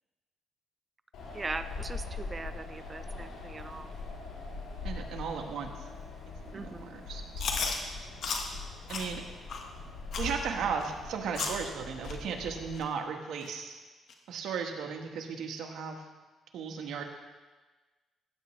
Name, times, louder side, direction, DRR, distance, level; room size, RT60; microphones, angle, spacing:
Wind, 1.1-12.8, left 3 dB, 85° left, 3.2 m, -42 dB
voice 1, 1.3-3.9 6.5-6.9, right 3 dB, 30° right, 10 dB, 0.6 m, -40 dB
voice 2, 4.8-5.8 6.4-7.6 8.9-9.2 10.2-13.8 14.3-16.0 16.5-17.0, right 6 dB, 80° right, 3 dB, 1.4 m, -36 dB
Chewing mastication, 7.4-7.8 8.2-8.4 8.9-9.1 9.5-9.6 10.1-10.3 10.8-10.9 11.3-11.6 12.0-12.1 12.8-12.9 13.4-13.5 14.1-14.2, left 5 dB, 65° left, 1.4 m, -33 dB
15.5 x 9.1 x 3.2 m, 1.3 s
cardioid pair, 90°, 0 cm